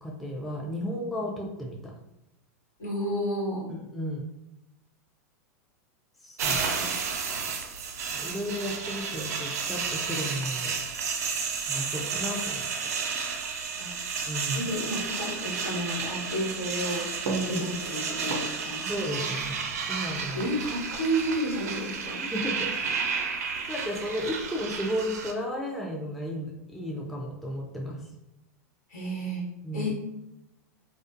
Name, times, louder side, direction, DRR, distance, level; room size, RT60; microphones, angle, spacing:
voice 1, 0.0-1.9 3.7-4.2 6.2-6.6 8.0-10.7 11.7-12.7 14.3-14.7 17.3-17.6 18.9-20.4 22.2-22.7 23.4-28.0 29.6-29.9, equal, ahead, -2 dB, 0.4 m, -33 dB
voice 2, 2.8-3.7 6.4-7.0 13.7-14.0 14.5-17.2 17.5-18.9 20.3-22.2 28.9-29.4 29.7-29.9, equal, 80° left, -5 dB, 1.2 m, -31 dB
sound 1, 6.4-25.3, right 5 dB, 75° right, 0.4 m, -32 dB
2.4 x 2.4 x 2.4 m, 0.89 s
hypercardioid pair, 100°, 9 cm